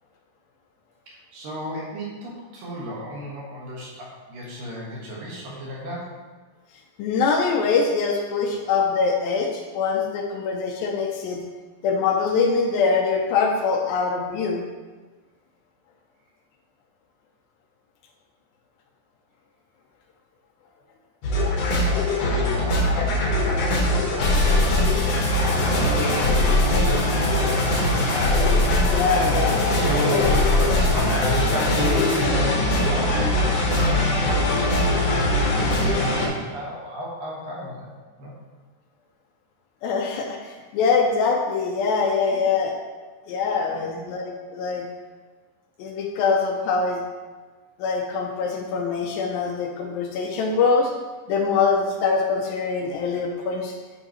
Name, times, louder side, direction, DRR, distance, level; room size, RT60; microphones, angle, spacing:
voice 1, 1.1-6.2 25.5-26.2 26.6-28.0 29.1-29.4 29.8-35.2 35.9-37.9 38.2-38.3 42.2-42.3 43.3-44.0, equal, 65° right, -5 dB, 3.0 m, -33 dB
voice 2, 7.0-11.4 11.8-14.6 28.8-30.3 39.8-42.7 43.3-44.9 45.8-47.0 47.8-50.9 51.3-53.7, left 5 dB, 80° left, 2 dB, 2.3 m, -23 dB
sound 1, 21.2-36.3, left 1 dB, 65° left, 1.7 m, -21 dB
10.5 x 4.7 x 3.0 m, 1.3 s
omnidirectional pair, 4.5 m